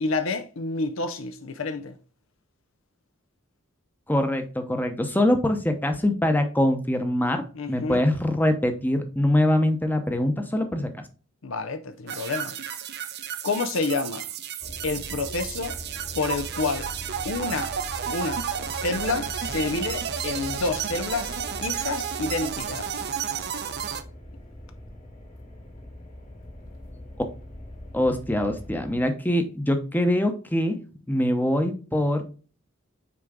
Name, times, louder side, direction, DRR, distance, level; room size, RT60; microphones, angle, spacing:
voice 1, 0.0-2.0 7.5-8.1 11.4-12.5 13.4-14.3 14.8-15.8 16.1-16.9 17.2-17.8 18.1-18.4 18.8-21.3 21.6-22.9, left 3 dB, 70° left, 0.6 m, -29 dB
voice 2, 4.1-11.0 27.9-30.8 31.1-32.2, left 1 dB, 10° left, 0.8 m, -23 dB
sound 1, 12.1-24.0, right 8 dB, 50° right, 0.6 m, -32 dB
sound 2, 14.6-29.1, equal, 40° left, 1.6 m, -41 dB
6.1 x 4.5 x 3.6 m
head